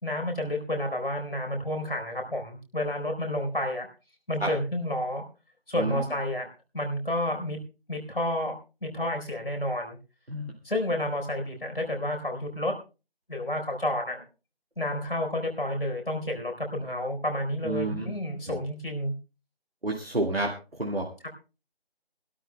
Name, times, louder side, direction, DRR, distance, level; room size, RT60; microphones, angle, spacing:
voice 1, 0.0-3.9 4.3-5.2 5.7-6.5 6.7-7.6 7.9-10.0 10.6-12.7 13.3-14.2 14.8-19.1, left 1 dB, 65° left, 3 dB, 4.2 m, -30 dB
voice 2, 17.6-18.1 18.5-18.6 19.8-21.1, right 2 dB, 70° right, 0 dB, 2.2 m, -30 dB
24.0 x 12.5 x 2.2 m, 0.31 s
figure-of-eight pair, 170°, 31 cm